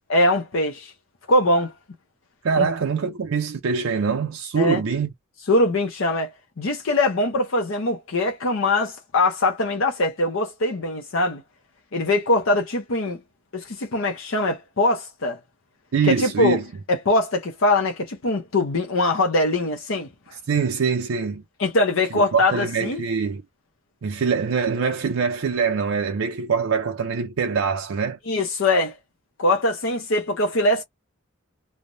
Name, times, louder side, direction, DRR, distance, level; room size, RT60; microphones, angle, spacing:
voice 1, 0.1-0.9 1.3-1.7 2.6-2.7 4.6-4.8 5.5-6.3 6.6-11.4 11.9-13.2 13.5-15.4 16.0-16.6 16.9-20.1 21.6-23.0 28.3-28.9 29.4-30.8, left 2 dB, 70° left, 0.7 m, -22 dB
voice 2, 2.4-5.1 15.9-16.6 20.5-21.4 22.1-23.4 24.0-28.2, right 5 dB, 80° right, 0.5 m, -24 dB
3.2 x 2.1 x 2.6 m
head